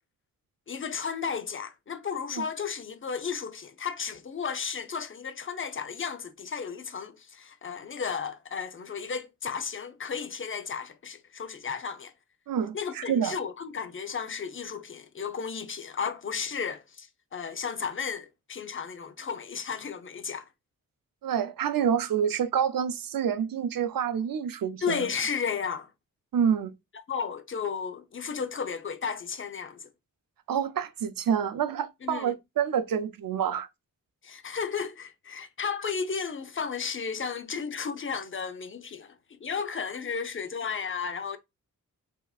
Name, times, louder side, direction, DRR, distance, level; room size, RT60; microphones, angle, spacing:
voice 1, 0.7-12.1 12.7-20.5 24.8-25.9 27.1-29.9 32.0-32.4 34.2-41.4, left 6 dB, 40° left, 0.6 m, -34 dB
voice 2, 12.5-13.4 21.2-25.1 26.3-26.7 30.5-33.7, right 8 dB, 85° right, 0.6 m, -28 dB
5.6 x 2.9 x 2.4 m
wide cardioid pair, 115°, 33 cm